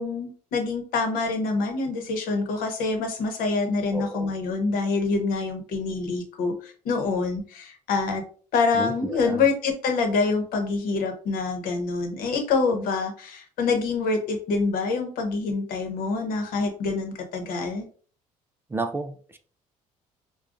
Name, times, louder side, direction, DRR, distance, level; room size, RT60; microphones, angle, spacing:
voice 1, 0.0-8.2 8.5-17.9, left 4 dB, 80° left, 0.9 m, -26 dB
voice 2, 3.9-4.3 8.7-9.5 12.7-12.8 18.7-19.4, right 2 dB, 15° right, 0.3 m, -32 dB
4.9 x 2.2 x 2.5 m
cardioid pair, 135°, 14 cm